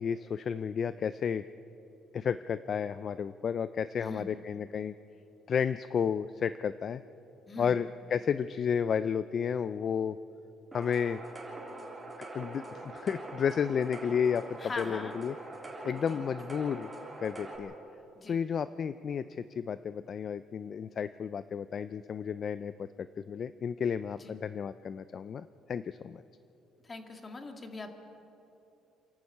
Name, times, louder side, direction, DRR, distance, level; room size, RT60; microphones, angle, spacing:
voice 1, 0.0-1.4 2.1-4.9 5.5-7.0 7.6-10.2 10.7-11.2 12.3-15.3 15.8-16.9 17.2-17.7 18.3-22.9 23.2-26.2, left 7 dB, 45° left, 13 dB, 0.4 m, -32 dB
voice 2, 4.0-4.3 7.5-7.8 14.6-15.1 16.1-16.2 18.2-18.4 24.2-24.4 26.8-27.9, left 3 dB, 25° left, 5 dB, 2.0 m, -42 dB
sound 1, 10.7-17.6, right 2 dB, 15° right, 3.8 m, -43 dB
27.0 x 12.0 x 8.5 m, 3.0 s
cardioid pair, 125°, 0 cm